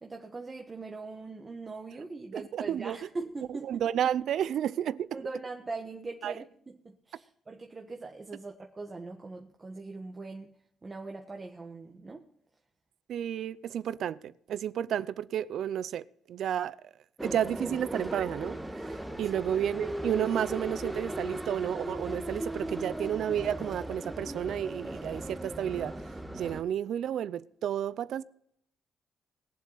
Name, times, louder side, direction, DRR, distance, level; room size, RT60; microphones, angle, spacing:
voice 1, 0.0-3.8 5.1-10.5 10.8-12.3, right 3 dB, 25° right, 1.4 m, -41 dB
voice 2, 2.3-3.0 3.5-5.2 6.2-6.3 13.1-16.8 17.2-18.6 19.2-25.9 26.3-28.2, right 10 dB, 70° right, 0.5 m, -31 dB
sound 1, 17.2-26.6, right 1 dB, 10° right, 1.5 m, -37 dB
21.0 x 7.6 x 4.0 m
cardioid pair, 90°, 0 cm